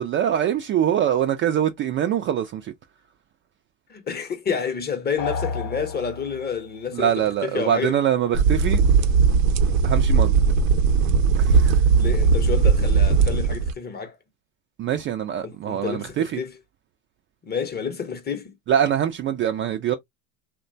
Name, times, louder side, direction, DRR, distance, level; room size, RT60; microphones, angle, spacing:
voice 1, 0.0-2.7 6.9-8.8 9.8-10.3 11.4-11.8 14.8-16.4 18.7-19.9, right 10 dB, 30° right, 0.4 m, -23 dB
voice 2, 3.9-8.0 11.9-14.1 15.4-16.5 17.4-18.5, left 6 dB, 25° left, 0.8 m, -29 dB
sound 1, 5.2-6.7, left 4 dB, 70° left, 0.8 m, -31 dB
sound 2, 8.3-13.7, right 5 dB, 70° right, 0.7 m, -18 dB
2.9 x 2.2 x 2.6 m
hypercardioid pair, 95°, 41 cm